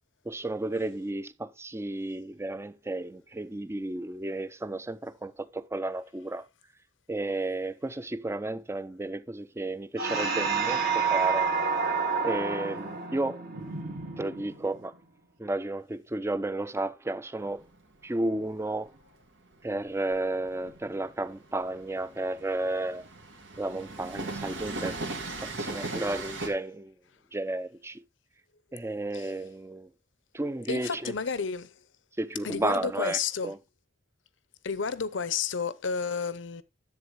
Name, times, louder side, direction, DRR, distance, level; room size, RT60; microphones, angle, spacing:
voice 1, 0.3-6.5 7.1-11.5 12.2-13.4 14.2-14.9 15.4-17.6 18.0-18.9 19.6-23.1 23.6-25.0 25.4-26.9 27.3-28.0 28.7-29.9 30.3-31.1 32.2-33.6, right 2 dB, 15° right, 0.5 m, -32 dB
sound 1, 10.0-14.8, right 5 dB, 60° right, 2.0 m, -29 dB
Train, 17.4-26.5, right 2 dB, 85° right, 2.1 m, -39 dB
voice 2, 25.8-26.1 29.1-29.3 30.7-31.7 32.4-33.5 34.6-36.6, left 5 dB, 80° left, 0.8 m, -31 dB
10.5 x 8.0 x 3.0 m
head